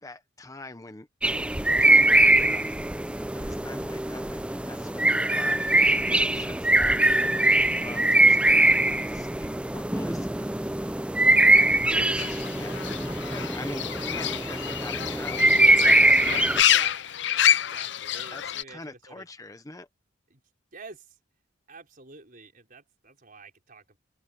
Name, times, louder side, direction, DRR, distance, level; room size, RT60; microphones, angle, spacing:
voice 1, 0.0-1.1 1.3-1.5 1.8-2.7 3.3-10.5 10.7-11.1 11.5-12.8 13.3-16.2 18.3-18.4 18.7-19.9, left 2 dB, 20° left, 0.9 m, -44 dB
sound 1, 1.2-16.6, right 2 dB, 5° right, 0.4 m, -22 dB
voice 2, 3.1-3.6 14.5-14.7 16.3-19.3 20.3-20.4 20.7-21.2 21.7-24.0, right 4 dB, 45° right, 5.2 m, -48 dB
sound 2, 7.6-16.9, right 2 dB, 30° right, 5.6 m, -58 dB
Fowl / Bird, 12.2-18.6, left 11 dB, 65° left, 0.6 m, -27 dB
open air
head